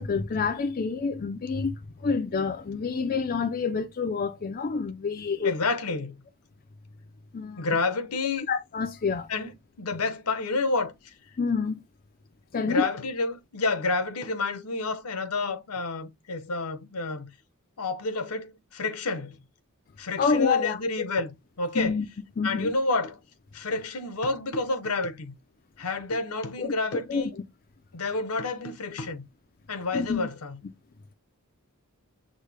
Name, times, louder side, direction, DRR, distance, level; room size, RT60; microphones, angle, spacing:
voice 1, 0.0-5.5 7.3-7.7 8.5-9.3 11.4-11.8 12.5-12.9 20.2-20.8 21.7-22.1 22.4-22.7 26.6-27.3 29.9-30.3, left 5 dB, 40° left, 0.4 m, -28 dB
voice 2, 5.4-6.2 7.6-8.5 9.3-10.9 12.6-17.3 17.8-19.4 20.0-21.3 21.6-22.0 22.4-23.2 23.5-25.3 25.8-27.3 27.9-29.3 29.7-30.6, left 3 dB, 85° left, 0.9 m, -29 dB
6.3 x 2.2 x 3.3 m
head